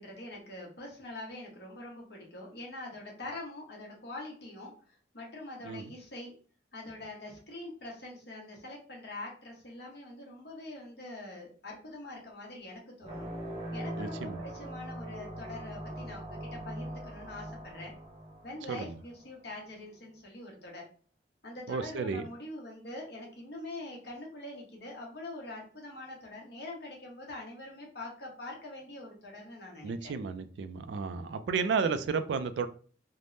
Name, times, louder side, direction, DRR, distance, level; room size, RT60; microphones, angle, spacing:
voice 1, 0.0-6.3 6.7-13.3 13.7-17.9 18.4-20.9 21.4-30.1, left 2 dB, 60° left, -1 dB, 1.0 m, -44 dB
sound 1, 13.0-19.2, right 1 dB, 35° right, 0.6 m, -41 dB
voice 2, 14.0-14.4 18.7-18.9 21.7-22.3 29.8-32.7, right 5 dB, 70° right, 11 dB, 0.3 m, -32 dB
3.3 x 2.1 x 2.6 m, 0.41 s
head